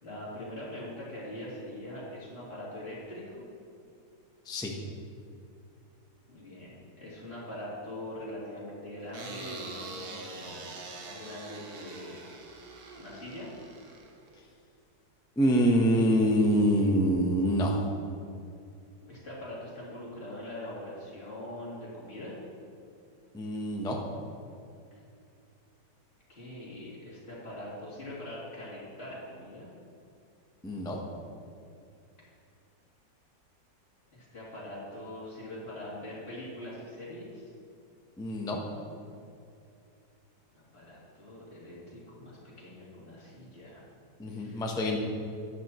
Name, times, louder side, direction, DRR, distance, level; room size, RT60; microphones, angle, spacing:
voice 1, 0.0-3.2 6.3-12.2 13.0-13.5 19.1-22.4 26.3-29.7 34.1-37.4 40.5-43.8 44.3-44.6 44.9-45.0, left 1 dB, 35° left, -7 dB, 3.0 m, -42 dB
sound 1, 9.1-14.4, right 3 dB, 60° right, 1.4 m, -44 dB
voice 2, 15.4-17.8 23.3-24.0 30.6-31.0 38.2-38.6 44.2-45.0, equal, 5° left, 0 dB, 0.5 m, -25 dB
11.5 x 9.9 x 3.1 m, 2.4 s
omnidirectional pair, 1.9 m